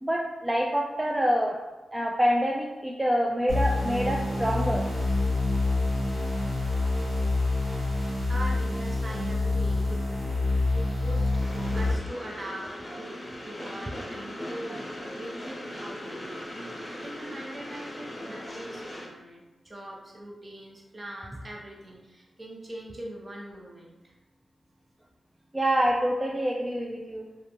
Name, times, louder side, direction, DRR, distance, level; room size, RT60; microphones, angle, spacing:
voice 1, 0.0-1.6 1.9-4.9 25.5-27.3, equal, 15° right, -2 dB, 0.3 m, -26 dB
sound 1, 3.5-11.9, left 2 dB, 85° right, 1.0 m, -27 dB
voice 2, 8.3-24.1, right 1 dB, 40° right, -2 dB, 0.7 m, -42 dB
Train, 11.4-19.1, equal, 35° left, 0.6 m, -39 dB
2.8 x 2.6 x 2.3 m, 1.1 s
cardioid pair, 45°, 0 cm